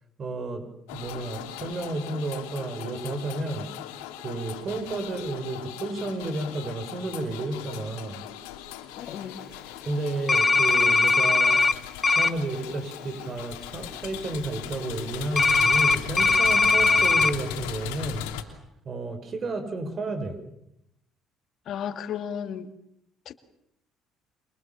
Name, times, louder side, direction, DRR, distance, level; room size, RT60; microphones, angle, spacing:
voice 1, 0.2-3.7 4.2-8.2 9.8-11.6 12.1-18.2 18.8-20.4, right 2 dB, 45° right, 6.5 m, -32 dB
sound 1, 0.9-18.4, left 11 dB, 90° left, 3.1 m, -38 dB
voice 2, 9.0-9.4 21.7-22.7 23.3-23.4, left 8 dB, 60° left, 2.3 m, -34 dB
sound 2, 10.3-11.7 12.0-12.3 15.4-17.3, left 3 dB, 25° left, 1.8 m, -20 dB
29.5 x 26.0 x 7.5 m
supercardioid pair, 75°, 0 cm